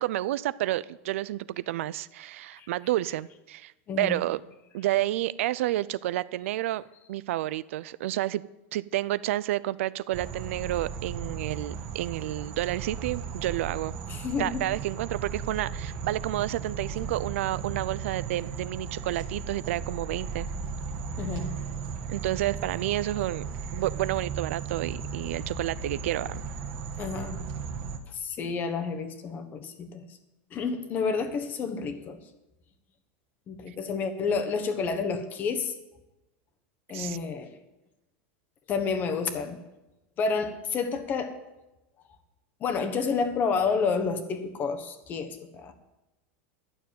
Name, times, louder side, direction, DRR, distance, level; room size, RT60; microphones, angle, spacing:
voice 1, 0.0-3.7 4.0-4.4 4.7-6.8 7.1-8.4 8.7-14.0 14.4-20.5 22.1-23.5 23.7-26.4 36.9-37.2, right 15 dB, 75° right, 18 dB, 0.4 m, -30 dB
voice 2, 3.9-4.2 14.1-14.6 21.2-21.5 27.0-27.4 28.1-30.1 30.5-32.2 33.5-35.7 36.9-37.5 38.7-39.6 40.2-41.4 42.6-45.7, left 5 dB, 25° left, 8 dB, 1.1 m, -30 dB
sound 1, 10.1-28.0, right 6 dB, 40° right, 1.5 m, -36 dB
12.0 x 6.8 x 9.2 m, 1.0 s
supercardioid pair, 165°, 7 cm